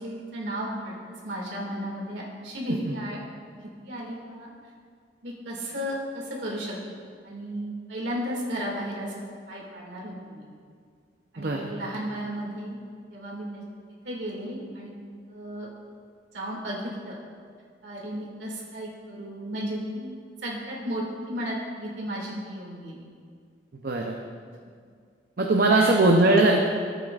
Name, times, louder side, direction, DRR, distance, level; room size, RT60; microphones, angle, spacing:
voice 1, 0.0-3.2 3.5-4.5 5.2-9.1 9.5-10.5 11.3-12.8 13.1-13.6 14.0-15.0 15.3-15.7 16.3-17.2 17.8-20.2 20.4-23.0 25.7-26.0, equal, 80° right, -4 dB, 2.3 m, -34 dB
voice 2, 11.4-11.7 23.8-24.2 25.4-26.6, right 2 dB, 55° right, 1 dB, 0.7 m, -20 dB
15.0 x 8.2 x 2.4 m, 2.1 s
head